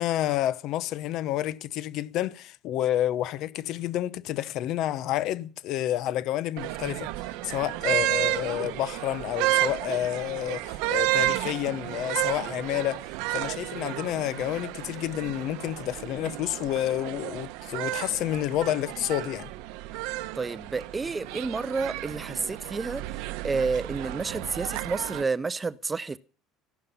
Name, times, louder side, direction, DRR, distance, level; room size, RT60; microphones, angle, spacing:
voice 1, 0.0-7.1 7.4-13.1 13.3-19.5, left 13 dB, 60° left, 0.8 m, -29 dB
sound 1, 6.6-25.2, right 18 dB, 85° right, 0.9 m, -32 dB
voice 2, 20.3-23.0 23.4-26.2, right 4 dB, 15° right, 0.6 m, -30 dB
14.0 x 11.5 x 5.6 m
cardioid pair, 150°, 0 cm